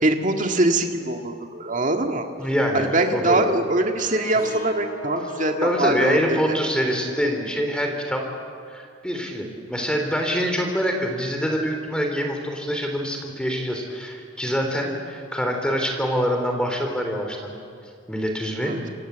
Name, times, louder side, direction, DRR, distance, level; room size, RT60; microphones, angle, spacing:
voice 1, 0.0-2.3 2.7-6.6 18.6-18.8, right 2 dB, 40° right, 4 dB, 2.0 m, -23 dB
voice 2, 2.4-3.4 5.6-8.2 8.7-17.6 18.1-18.8, equal, 5° left, 3 dB, 3.3 m, -25 dB
sound 1, 4.0-7.5, left 1 dB, 45° left, 3.8 m, -37 dB
27.5 x 24.5 x 8.1 m, 2.4 s
head